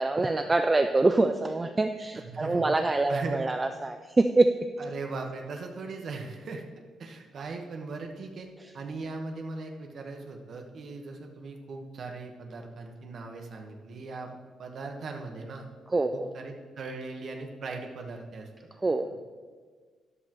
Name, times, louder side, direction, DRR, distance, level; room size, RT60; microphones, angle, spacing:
voice 1, 0.0-4.5 15.9-16.3 18.8-19.1, right 2 dB, 15° right, 7 dB, 0.3 m, -25 dB
voice 2, 2.1-2.7 3.1-3.4 4.8-6.6 7.0-8.5 8.7-15.7 16.1-18.5 19.0-19.2, right 3 dB, 45° right, 3 dB, 1.2 m, -39 dB
12.5 x 12.0 x 3.0 m, 1.5 s
cardioid pair, 175°, 0 cm